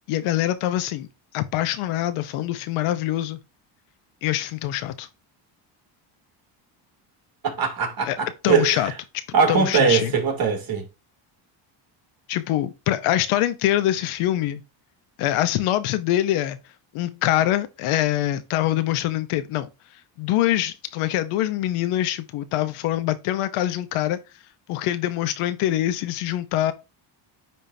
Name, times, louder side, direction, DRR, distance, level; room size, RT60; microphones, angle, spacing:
voice 1, 0.1-1.1 1.3-3.4 4.2-5.1 8.1-8.2 8.4-8.9 9.5-10.1 12.3-14.6 15.2-16.6 16.9-19.7 20.2-24.2 24.7-26.7, left 13 dB, 85° left, 1.0 m, -24 dB
voice 2, 7.4-8.8 9.3-10.9, right 6 dB, 45° right, 2.7 m, -21 dB
9.4 x 3.7 x 2.7 m
cardioid pair, 110°, 49 cm